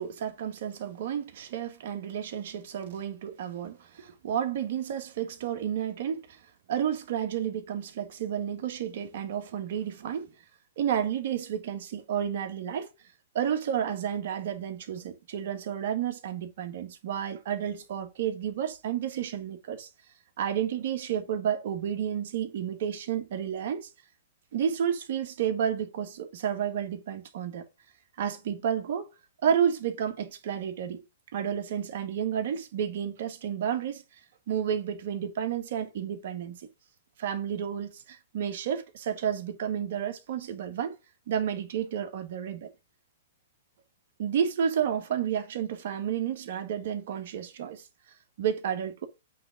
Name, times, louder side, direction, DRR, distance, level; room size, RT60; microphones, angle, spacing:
voice 1, 0.0-6.4 6.7-10.3 10.8-12.9 13.3-19.9 20.4-23.9 24.5-27.6 28.2-29.1 29.4-31.0 31.3-34.0 34.5-36.7 37.2-40.9 41.3-42.7 44.2-47.8 48.4-49.1, right 9 dB, 60° right, 1.7 m, -31 dB
8.3 x 3.7 x 5.9 m
hypercardioid pair, 130°, 0 cm